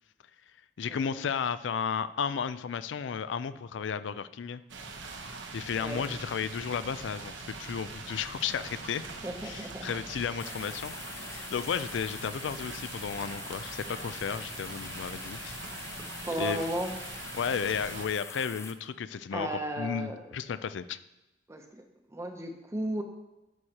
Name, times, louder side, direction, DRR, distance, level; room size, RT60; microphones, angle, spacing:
voice 1, 0.8-4.6 5.5-9.0 9.4-10.9 11.2-15.9 16.4-16.6 17.3-21.0, left 7 dB, 80° left, 14 dB, 0.4 m, -33 dB
sound 1, 4.7-18.0, right 3 dB, 90° right, 1.0 m, -43 dB
voice 2, 9.2-9.9 16.2-16.9 19.3-20.2 21.5-21.6 22.1-23.0, right 1 dB, 15° right, 4 dB, 0.7 m, -34 dB
sound 2, 10.4-18.7, left 4 dB, 15° left, 0.4 m, -44 dB
11.0 x 6.2 x 2.9 m, 0.98 s
head